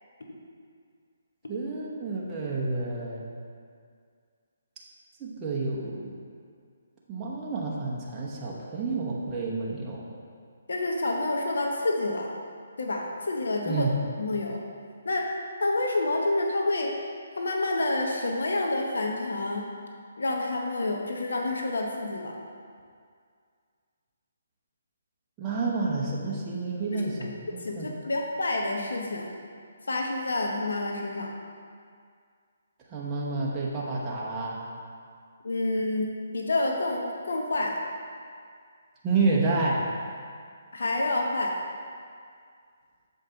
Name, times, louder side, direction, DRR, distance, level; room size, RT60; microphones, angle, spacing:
voice 1, 1.5-3.3 5.2-6.1 7.1-10.0 13.6-13.9 25.4-27.9 32.9-34.6 39.0-39.9, right 3 dB, 15° right, -5 dB, 1.0 m, -29 dB
voice 2, 10.7-12.3 12.8-13.9 14.2-14.6 15.0-15.3 15.6-17.0 17.4-19.7 20.2-22.4 26.9-27.3 27.6-29.3 29.9-31.3 35.4-37.7 40.7-41.5, left 2 dB, 80° left, 1 dB, 0.9 m, -28 dB
7.2 x 5.2 x 3.8 m, 2.2 s
hypercardioid pair, 160°, 0 cm